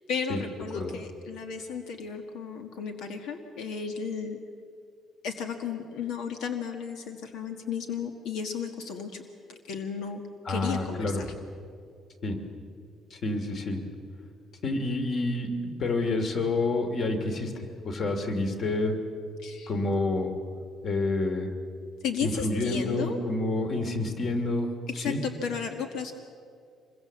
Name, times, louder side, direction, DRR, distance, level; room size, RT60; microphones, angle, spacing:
voice 1, 0.1-4.4 5.2-9.2 9.5-10.2 10.5-11.3 19.4-19.7 22.0-23.2 24.9-26.1, left 6 dB, 80° left, 5 dB, 1.6 m, -34 dB
voice 2, 10.4-11.2 12.2-12.4 13.1-13.8 14.6-19.0 19.7-20.3 20.8-21.5 22.2-25.2, left 2 dB, 40° left, 5 dB, 2.7 m, -28 dB
25.5 x 22.5 x 7.4 m, 2.3 s
cardioid pair, 165°, 0 cm